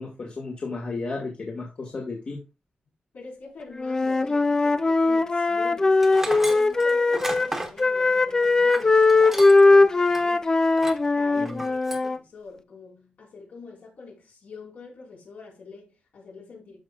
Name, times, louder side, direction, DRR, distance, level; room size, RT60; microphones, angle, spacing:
voice 1, 0.0-2.4 11.4-11.7, left 3 dB, 40° left, 1.7 m, -33 dB
voice 2, 3.1-6.0 6.2-10.5 11.1-16.8, left 4 dB, 70° left, 4.4 m, -44 dB
Wind instrument woodwind instrument, 3.8-7.5 7.8-12.2, left 3 dB, 20° left, 0.4 m, -20 dB
Tools, 6.0-9.8 10.1-10.2 10.7-11.1 11.5-12.1, right 1 dB, 10° right, 1.2 m, -34 dB
12.5 x 5.5 x 2.3 m
wide cardioid pair, 175°, 3 cm